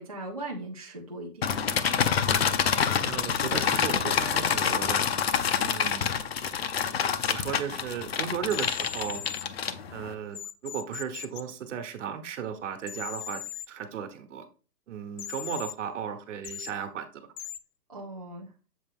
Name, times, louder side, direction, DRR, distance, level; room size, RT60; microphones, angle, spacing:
voice 1, 0.0-1.5 17.9-18.5, right 2 dB, 25° right, -2 dB, 0.4 m, -39 dB
sound 1, 1.4-10.1, left 7 dB, 40° left, 0.5 m, -27 dB
voice 2, 3.0-5.0 5.6-6.1 7.2-9.2 9.9-10.4 10.6-13.4 13.7-14.4 14.9-17.3, right 8 dB, 50° right, 8 dB, 1.2 m, -35 dB
sound 2, 7.2-7.3 8.5-9.4 10.3-11.4 12.8-13.7 15.2-15.7 16.4-16.7 17.4-17.6, left 11 dB, 75° left, 0.8 m, -39 dB
7.3 x 4.2 x 3.5 m, 0.35 s
hypercardioid pair, 150°, 48 cm